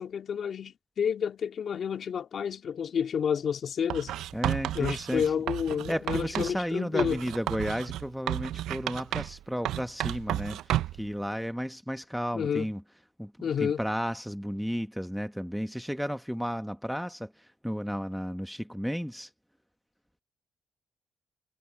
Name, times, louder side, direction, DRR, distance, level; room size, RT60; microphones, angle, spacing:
voice 1, 0.0-4.1 4.7-7.2 12.3-12.7 13.4-13.8, left 7 dB, 60° left, 2.2 m, -30 dB
Writing, 3.9-6.6 7.0-9.4 9.7-11.1, right 13 dB, 85° right, 0.5 m, -32 dB
voice 2, 4.3-5.2 5.9-12.8 13.2-19.3, equal, ahead, 1.2 m, -33 dB
cardioid pair, 75°, 0 cm